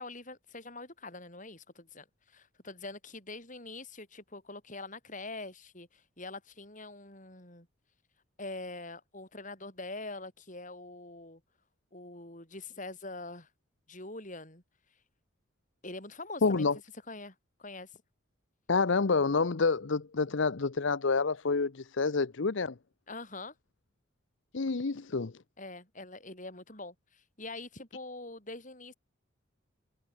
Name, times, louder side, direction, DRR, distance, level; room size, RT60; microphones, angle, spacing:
voice 1, 0.0-7.7 8.4-11.4 11.9-13.5 13.9-14.6 15.8-16.7 17.1-18.0 23.1-23.5 25.6-28.9, left 2 dB, 40° left, 8.0 m, -44 dB
voice 2, 16.4-16.7 18.7-22.7 24.5-25.3, left 4 dB, 65° left, 0.7 m, -28 dB
head